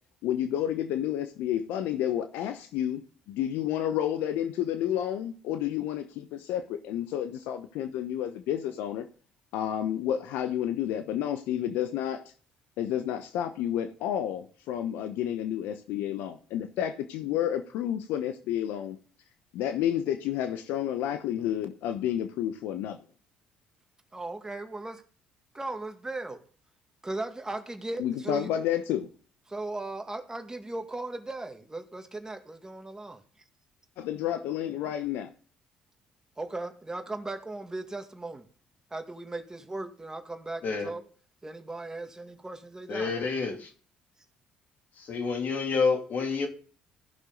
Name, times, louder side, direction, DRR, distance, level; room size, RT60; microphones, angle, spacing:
voice 1, 0.2-9.0 9.5-12.2 12.8-19.0 19.5-23.0 28.0-29.1 34.0-35.3, left 10 dB, 75° left, 9 dB, 0.8 m, -30 dB
voice 2, 24.1-25.0 25.5-26.4 27.0-28.6 29.5-33.2 36.4-38.5 38.9-41.0 41.4-43.1, right 2 dB, 20° right, 6 dB, 1.9 m, -37 dB
voice 3, 42.9-43.7 45.0-46.5, left 4 dB, 60° left, 3 dB, 2.8 m, -28 dB
15.0 x 6.3 x 3.9 m, 0.42 s
supercardioid pair, 65°, 3 cm